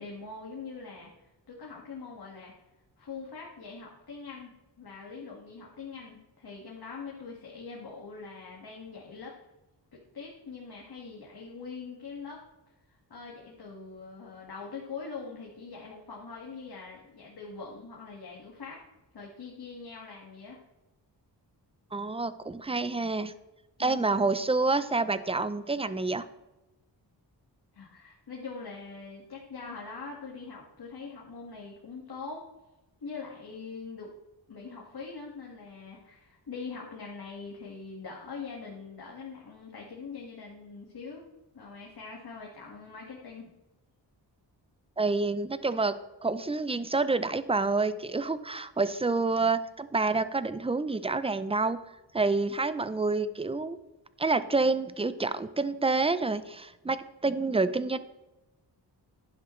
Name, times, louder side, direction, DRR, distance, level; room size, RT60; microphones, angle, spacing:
voice 1, 0.0-2.5 3.0-9.3 10.1-12.4 13.1-18.8 19.1-20.6 23.8-24.1 27.7-32.4 33.0-34.1 34.5-41.2 41.5-43.5, left 4 dB, 60° left, -2 dB, 2.0 m, -43 dB
voice 2, 21.9-23.3 23.8-26.3 45.0-46.0 46.2-51.8 52.1-53.8 54.2-58.0, right 3 dB, 15° right, 14 dB, 0.6 m, -28 dB
11.5 x 10.5 x 3.2 m, 1.0 s
wide cardioid pair, 80°, 43 cm